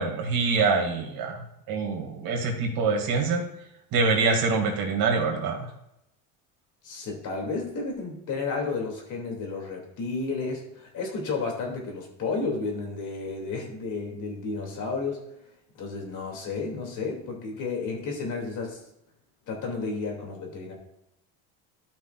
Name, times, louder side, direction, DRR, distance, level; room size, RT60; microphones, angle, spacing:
voice 1, 0.0-3.5 3.9-5.7, right 4 dB, 60° right, 2 dB, 2.3 m, -25 dB
voice 2, 6.8-15.2 15.7-18.8 19.5-20.7, left 4 dB, 50° left, 1 dB, 2.6 m, -32 dB
13.0 x 6.0 x 2.4 m, 0.83 s
supercardioid pair, 115°, 38 cm